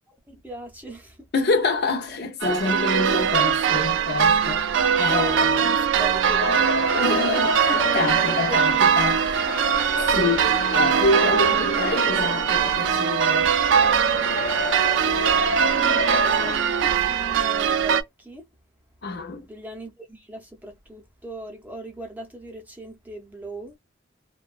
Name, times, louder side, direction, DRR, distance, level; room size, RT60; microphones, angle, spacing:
voice 1, 0.1-1.3 4.8-6.6 8.5-8.8 15.7-18.5 19.5-23.8, equal, 10° right, 0.6 m, -38 dB
voice 2, 1.3-5.7 6.9-9.4 10.1-13.5 19.0-19.5, left 3 dB, 55° left, 0.6 m, -26 dB
sound 1, 2.4-18.0, right 8 dB, 65° right, 0.4 m, -21 dB
sound 2, 6.4-16.6, left 3 dB, 85° left, 0.8 m, -31 dB
2.8 x 2.2 x 2.3 m
head